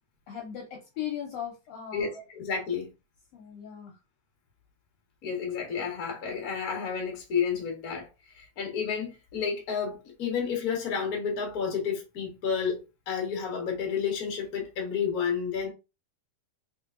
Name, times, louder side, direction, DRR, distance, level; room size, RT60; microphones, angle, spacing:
voice 1, 0.3-2.1 3.3-3.9, left 10 dB, 70° left, 1.8 m, -38 dB
voice 2, 1.9-2.9 5.2-8.1 8.4-15.7, left 6 dB, 45° left, 1.2 m, -31 dB
4.0 x 3.8 x 2.5 m
omnidirectional pair, 3.4 m